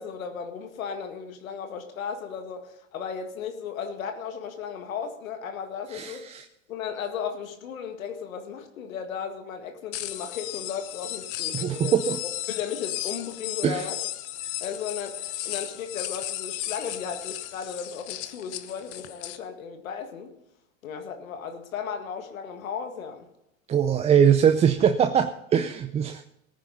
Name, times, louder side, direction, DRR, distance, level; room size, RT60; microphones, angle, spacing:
voice 1, 0.0-6.2 6.7-12.0 12.5-14.0 14.4-20.3 20.8-23.3, left 7 dB, 85° left, 6 dB, 1.9 m, -35 dB
voice 2, 5.9-6.5 11.5-12.2 13.6-13.9 23.7-26.2, right 8 dB, 15° right, 8 dB, 0.4 m, -22 dB
sound 1, 9.9-19.4, left 14 dB, 50° left, 1.0 m, -35 dB
18.5 x 9.9 x 4.1 m, 0.82 s
hypercardioid pair, 115°, 40 cm